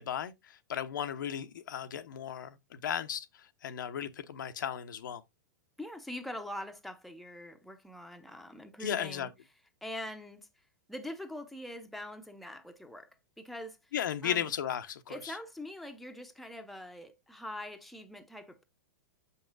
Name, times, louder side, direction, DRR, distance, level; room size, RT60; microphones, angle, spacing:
voice 1, 0.0-5.2 8.8-9.3 13.9-15.2, left 9 dB, 75° left, 0.8 m, -35 dB
voice 2, 5.8-9.3 9.8-10.4 10.9-13.1 13.4-13.8 14.2-14.5 15.1-18.6, left 1 dB, ahead, 0.8 m, -43 dB
7.0 x 5.4 x 2.5 m
hypercardioid pair, 120°, 11 cm